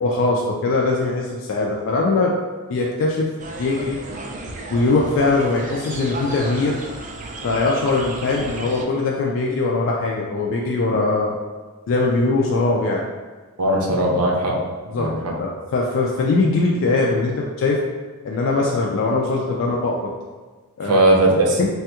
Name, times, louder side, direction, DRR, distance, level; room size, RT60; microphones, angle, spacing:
voice 1, 0.0-2.3 2.7-3.3 3.6-4.0 4.7-6.8 7.4-11.4 11.9-13.1 14.9-15.1 15.4-17.8 18.2-20.1 20.8-21.1 21.6-21.7, left 3 dB, 60° left, -2 dB, 0.3 m, -21 dB
sound 1, 3.4-8.8, right 2 dB, 35° right, 0.3 m, -34 dB
voice 2, 13.6-14.5 15.0-15.3 20.8-21.6, right 1 dB, 75° right, -1 dB, 0.6 m, -18 dB
3.2 x 2.3 x 2.8 m, 1.3 s
head